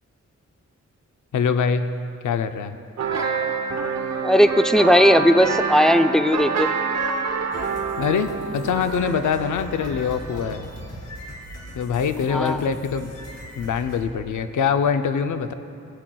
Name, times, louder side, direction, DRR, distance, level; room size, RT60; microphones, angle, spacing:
voice 1, 1.3-1.9 2.2-2.8 8.0-10.7 11.8-13.1 13.6-15.5, left 6 dB, 90° left, 9 dB, 0.5 m, -24 dB
sound 1, 3.0-10.7, right 5 dB, 65° right, 0.8 m, -27 dB
voice 2, 4.2-6.7 12.3-12.6, equal, ahead, 8 dB, 0.3 m, -17 dB
sound 2, 7.5-14.0, equal, 60° left, 2.2 m, -39 dB
19.0 x 7.7 x 2.3 m, 2.5 s
wide cardioid pair, 80°, 29 cm